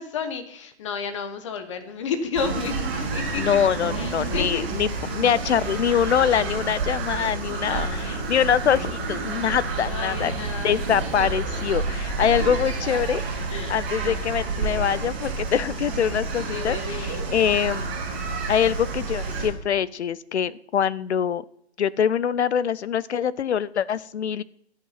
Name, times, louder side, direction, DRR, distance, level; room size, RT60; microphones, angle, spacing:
voice 1, 0.0-2.7 3.1-3.4 3.9-4.6 5.0-5.1 7.5-8.2 9.7-10.8 12.2-12.3 13.5-13.8 16.5-17.3, left 6 dB, 25° left, 9 dB, 1.1 m, -32 dB
sound 1, 2.3-19.5, right 3 dB, 25° right, 4.6 m, -29 dB
voice 2, 3.4-10.3 10.6-13.2 13.7-17.9 18.5-21.4 21.8-24.4, left 8 dB, 75° left, 20 dB, 0.7 m, -24 dB
10.5 x 8.2 x 5.7 m, 0.71 s
hypercardioid pair, 165°, 34 cm